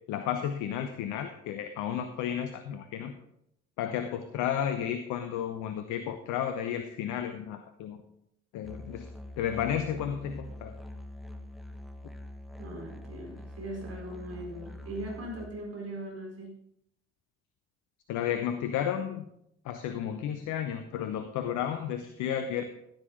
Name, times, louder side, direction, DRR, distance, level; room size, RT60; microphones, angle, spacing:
voice 1, 0.1-3.1 3.8-8.0 8.5-9.1 9.4-10.7 18.1-19.3 19.6-22.6, left 9 dB, 60° left, 9 dB, 0.8 m, -32 dB
Musical instrument, 8.6-15.5, left 1 dB, ahead, 1.2 m, -44 dB
voice 2, 12.6-16.6, right 1 dB, 45° right, -1 dB, 4.5 m, -40 dB
14.0 x 7.9 x 4.1 m, 0.75 s
figure-of-eight pair, 40°, 35 cm